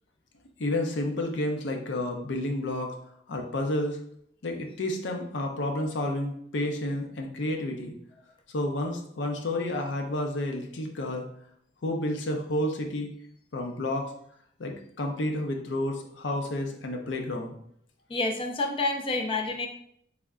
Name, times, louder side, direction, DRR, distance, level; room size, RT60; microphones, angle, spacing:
voice 1, 0.6-2.9 3.3-4.0 4.4-7.9 8.5-11.3 11.8-13.1 13.5-14.1 14.6-17.5, left 1 dB, 80° left, 3 dB, 0.6 m, -30 dB
voice 2, 18.1-19.7, left 2 dB, 30° left, 3 dB, 0.4 m, -28 dB
3.4 x 2.1 x 3.6 m, 0.67 s
head